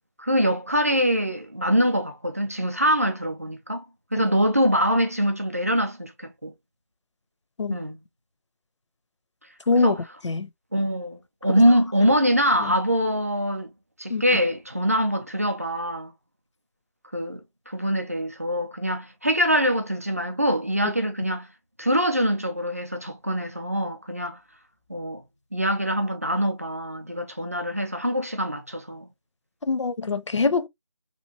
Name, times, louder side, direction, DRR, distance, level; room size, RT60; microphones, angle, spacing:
voice 1, 0.2-3.9 4.1-6.5 7.7-8.0 9.7-10.0 10.7-13.7 14.0-16.1 17.1-21.5 21.8-24.4 24.9-25.2 25.5-29.1, equal, 30° right, 0.4 m, -24 dB
voice 2, 29.7-30.7, left 4 dB, 65° left, 0.5 m, -23 dB
2.9 x 2.5 x 2.7 m
figure-of-eight pair, 170°, 16 cm